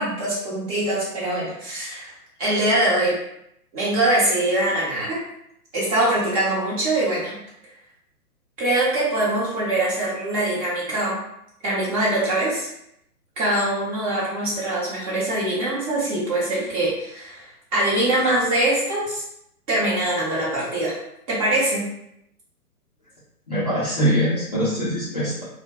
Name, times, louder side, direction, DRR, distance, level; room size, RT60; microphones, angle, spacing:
voice 1, 0.0-2.1 2.4-3.2 3.7-5.2 5.7-7.4 8.6-11.1 11.6-12.7 13.4-17.4 17.7-19.2 19.7-20.9 21.3-21.8, right 1 dB, 25° right, -6 dB, 0.7 m, -23 dB
voice 2, 23.5-25.4, equal, 30° left, -10 dB, 0.4 m, -23 dB
2.1 x 2.1 x 2.8 m, 0.78 s
hypercardioid pair, 130°, 46 cm